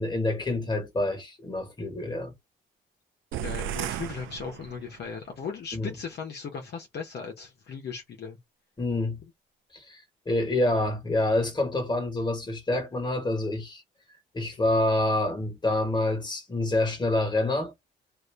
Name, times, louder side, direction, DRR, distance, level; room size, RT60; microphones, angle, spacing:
voice 1, 0.0-2.3 5.7-5.9 8.8-9.2 9.7-13.8 14.3-17.7, left 2 dB, 20° left, 1.5 m, -27 dB
sound 1, 3.3-5.2, right 12 dB, 80° right, 0.4 m, -35 dB
voice 2, 3.4-8.4, left 6 dB, 55° left, 0.9 m, -37 dB
2.7 x 2.6 x 3.3 m
cardioid pair, 90°, 20 cm